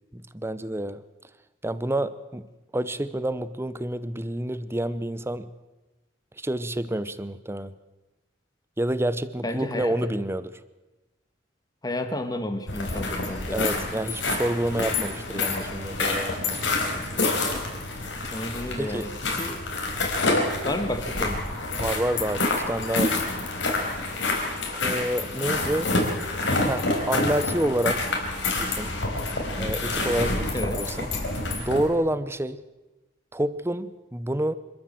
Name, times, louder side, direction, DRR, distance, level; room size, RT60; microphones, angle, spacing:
voice 1, 0.1-1.0 1.6-2.4 2.7-5.5 6.4-7.7 8.8-10.5 13.5-16.6 18.8-19.1 21.8-23.1 24.7-26.0 26.7-28.1 28.6-28.9 29.6-31.1 31.6-32.6 33.3-34.6, right 1 dB, 15° right, 15 dB, 0.8 m, -28 dB
voice 2, 9.4-9.9 11.8-13.8 18.3-19.6 20.3-21.4 30.5-30.8, left 1 dB, 20° left, 8 dB, 1.7 m, -32 dB
sound 1, 12.7-31.9, left 2 dB, 90° left, 4.3 m, -27 dB
26.0 x 13.5 x 7.7 m, 1.1 s
head